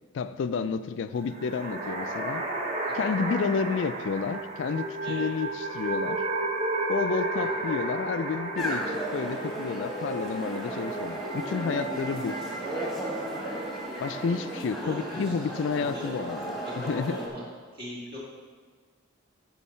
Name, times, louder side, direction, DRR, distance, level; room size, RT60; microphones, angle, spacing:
voice 1, 0.1-2.5 2.9-6.2 6.9-12.4 14.0-17.2, left 5 dB, 60° left, 12 dB, 0.3 m, -30 dB
sound 1, 1.2-14.6, right 2 dB, 30° right, 0.9 m, -33 dB
sound 2, 8.5-17.3, right 1 dB, ahead, 1.3 m, -34 dB
voice 2, 14.8-16.3 16.6-17.4 17.7-18.2, left 1 dB, 50° right, -6 dB, 2.2 m, -41 dB
12.5 x 4.5 x 4.3 m, 1.5 s
head